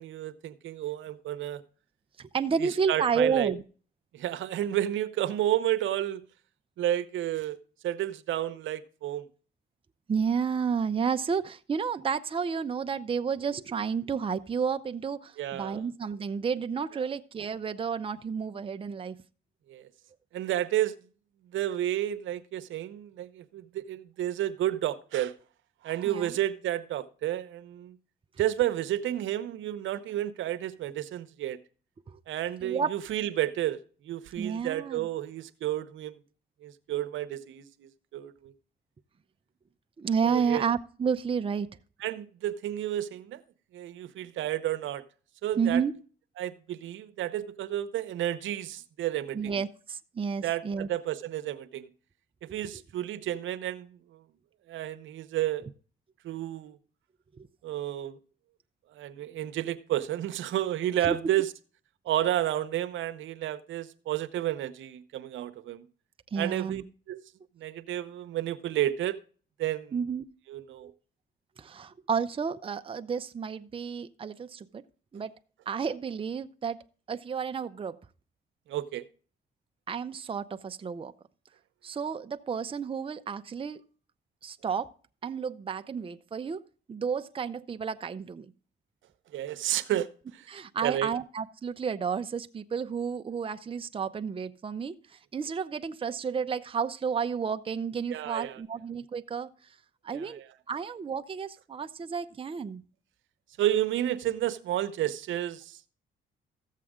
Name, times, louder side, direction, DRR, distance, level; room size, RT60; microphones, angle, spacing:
voice 1, 0.0-1.6 2.6-3.5 4.1-6.2 6.8-7.6 7.8-9.3 15.4-15.8 19.7-19.9 20.3-21.0 21.5-25.3 25.8-28.0 28.4-31.6 32.3-33.8 34.0-36.1 36.6-38.5 40.2-40.6 42.0-43.4 43.7-45.0 45.4-45.8 46.4-49.5 50.4-51.9 52.4-54.0 54.7-55.7 56.2-56.8 57.6-58.2 58.9-61.5 62.0-65.9 66.4-66.8 67.1-67.2 67.6-69.2 69.6-69.9 70.5-70.9 78.7-79.0 89.3-90.1 90.3-90.5 90.8-91.1 98.1-98.6 100.1-100.5 103.6-105.8, right 12 dB, 75° right, 0.9 m, -31 dB
voice 2, 2.2-3.6 10.1-19.2 26.0-26.4 32.1-32.2 32.6-32.9 34.4-35.1 40.0-41.7 45.6-45.9 49.3-50.9 57.4-57.5 61.1-61.2 66.3-66.8 69.9-70.2 70.8-70.9 71.6-74.8 75.1-75.3 75.7-78.0 79.9-81.1 81.8-83.8 84.4-84.9 85.2-86.6 86.9-88.5 90.5-99.5 100.0-100.4 100.7-102.8, right 6 dB, 25° right, 0.6 m, -31 dB
14.0 x 7.5 x 3.7 m
cardioid pair, 90°, 20 cm